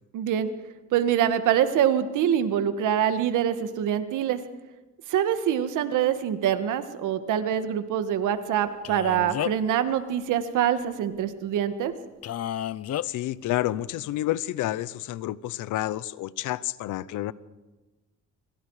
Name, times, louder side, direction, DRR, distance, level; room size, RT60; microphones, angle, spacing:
voice 1, 0.1-0.5 0.9-4.4 5.1-11.9, right 9 dB, 85° right, 10 dB, 1.8 m, -25 dB
Male speech man speaking, 8.8-9.7 12.2-13.1, left 11 dB, 55° left, 0.7 m, -31 dB
voice 2, 13.0-17.3, left 15 dB, 90° left, 18 dB, 0.8 m, -29 dB
27.5 x 24.5 x 4.9 m, 1.1 s
cardioid pair, 90°, 30 cm